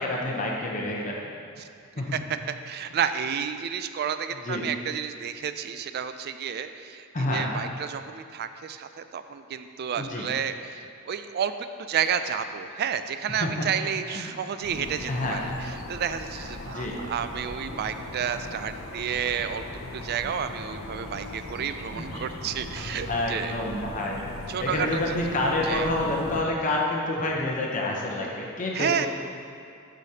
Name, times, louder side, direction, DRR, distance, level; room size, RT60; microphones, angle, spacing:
voice 1, 0.0-1.3 2.0-2.2 4.4-4.6 7.1-7.5 10.0-10.3 13.3-13.7 14.1-14.3 15.1-15.4 16.6-17.0 21.9-22.1 23.1-24.2 24.6-29.1, left 2 dB, 40° left, -2 dB, 0.8 m, -28 dB
voice 2, 2.7-11.5 11.8-19.6 19.9-23.6 24.5-25.2 25.6-25.9 28.7-29.1, right 7 dB, 50° right, 10 dB, 0.3 m, -31 dB
sound 1, 14.6-26.4, left 2 dB, 80° left, 0.7 m, -39 dB
12.5 x 5.1 x 2.8 m, 2.3 s
head